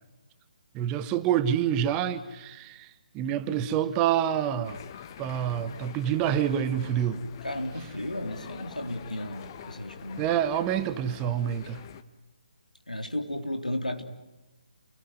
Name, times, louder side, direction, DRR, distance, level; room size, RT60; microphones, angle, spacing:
voice 1, 0.7-2.9 3.1-4.8 5.2-7.2 10.2-11.8, right 10 dB, 20° right, 1.3 m, -27 dB
voice 2, 3.2-3.7 7.4-10.2 12.9-14.0, left 1 dB, 90° left, 3.5 m, -34 dB
sound 1, 4.6-12.0, left 9 dB, 35° left, 1.4 m, -45 dB
29.5 x 19.5 x 9.3 m
figure-of-eight pair, 145°, 4 cm